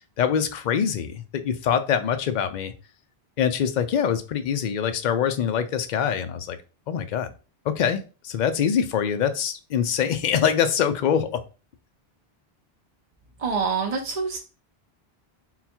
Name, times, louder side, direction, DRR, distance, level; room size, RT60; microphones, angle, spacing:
voice 1, 0.0-2.7 3.4-6.6 6.9-7.3 7.7-11.4, left 8 dB, 55° left, 10 dB, 0.6 m, -24 dB
voice 2, 13.4-14.4, right 5 dB, 45° right, 1 dB, 0.6 m, -26 dB
3.8 x 2.3 x 4.3 m, 0.33 s
omnidirectional pair, 1.0 m